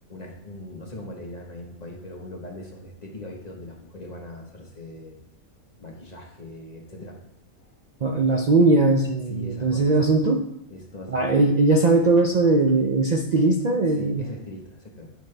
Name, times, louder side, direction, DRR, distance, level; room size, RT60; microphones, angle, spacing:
voice 1, 0.1-5.2 5.8-7.2 9.3-9.8 10.7-11.4 14.0-15.1, left 1 dB, 30° left, -1 dB, 1.2 m, -40 dB
voice 2, 8.0-10.4 11.1-14.3, right 3 dB, 75° right, 2 dB, 0.4 m, -20 dB
8.9 x 5.2 x 3.3 m, 0.78 s
omnidirectional pair, 1.5 m